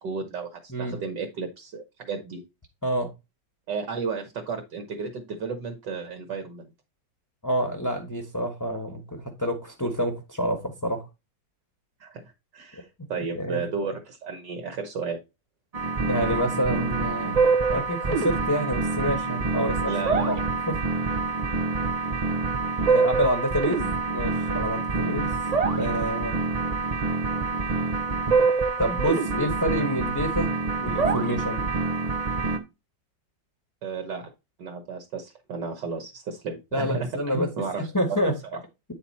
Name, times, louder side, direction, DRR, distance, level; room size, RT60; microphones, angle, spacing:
voice 1, 0.0-2.4 3.7-6.7 12.0-15.2 19.9-20.4 33.8-34.3 34.6-37.8 38.2-38.6, right 4 dB, 70° right, 1.7 m, -33 dB
voice 2, 0.7-1.0 2.8-3.1 7.4-11.0 13.4-13.7 16.0-19.9 20.3-20.4 20.7-20.8 22.9-25.3 25.8-26.4 28.8-31.7 36.7-37.5 37.7-38.3, equal, 10° left, 1.1 m, -28 dB
sound 1, 15.7-32.6, right 4 dB, 45° right, 0.4 m, -26 dB
9.0 x 4.2 x 4.2 m
omnidirectional pair, 2.0 m